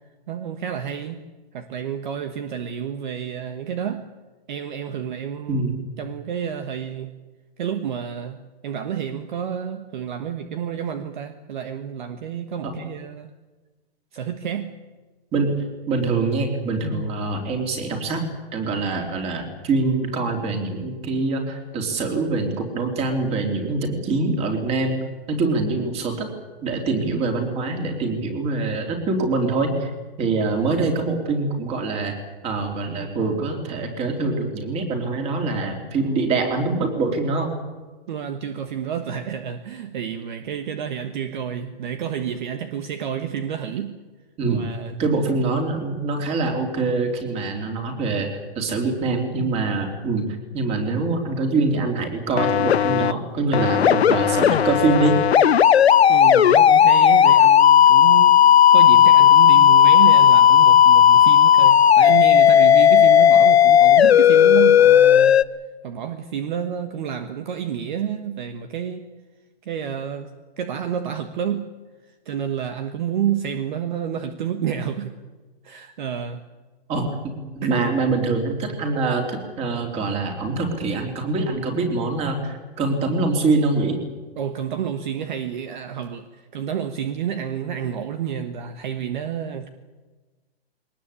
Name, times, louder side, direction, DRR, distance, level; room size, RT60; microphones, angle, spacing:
voice 1, 0.3-1.2 1.5-4.1 4.5-5.6 6.0-7.1 7.6-13.3 14.1-14.7 38.1-44.0 44.4-45.0 56.1-58.4 58.7-65.4 65.8-69.1 69.6-70.3 70.6-71.7 72.2-75.1 75.6-76.4 77.6-77.7 84.4-89.7, right 8 dB, 50° right, 1.5 m, -29 dB
voice 2, 15.9-25.0 25.3-26.3 26.6-29.9 30.2-32.2 32.4-37.6 44.4-44.7 45.0-48.3 48.6-50.3 50.5-55.2 76.9-84.0, right 3 dB, 20° right, 3.6 m, -24 dB
sound 1, 52.4-53.1 53.5-65.4, left 9 dB, 85° left, 0.9 m, -13 dB
22.0 x 19.5 x 8.6 m
hypercardioid pair, 155°, 31 cm